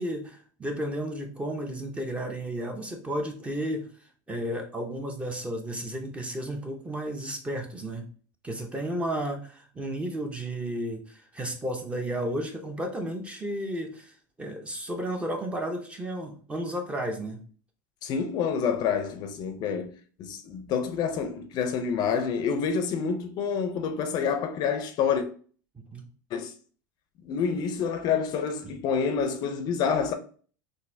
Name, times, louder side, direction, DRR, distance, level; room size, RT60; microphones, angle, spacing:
voice 1, 0.0-3.9 4.3-8.1 8.4-14.1 14.4-17.4 25.8-26.1 28.6-28.7, right 1 dB, 10° right, 0.6 m, -33 dB
voice 2, 18.0-19.9 20.2-25.3 26.3-26.5 27.2-30.1, left 6 dB, 45° left, 0.5 m, -28 dB
3.9 x 2.5 x 2.6 m
supercardioid pair, 125°, 10 cm